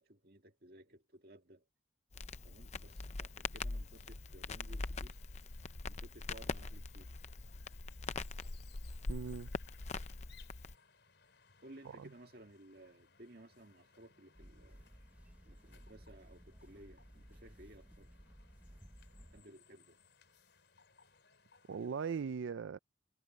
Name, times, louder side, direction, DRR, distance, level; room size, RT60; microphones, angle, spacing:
voice 1, 0.0-1.6 2.4-5.1 5.9-7.1 11.6-14.9 15.5-18.3 19.3-20.0, right 1 dB, 55° right, 1.9 m, -58 dB
Crackle, 2.1-10.8, left 3 dB, 35° left, 0.6 m, -43 dB
sound 1, 2.8-22.1, left 5 dB, 65° left, 5.0 m, -67 dB
voice 2, 9.1-9.5 11.8-12.1 21.7-22.8, right 6 dB, 85° right, 0.4 m, -39 dB
sound 2, 14.3-19.4, equal, 10° right, 0.9 m, -57 dB
head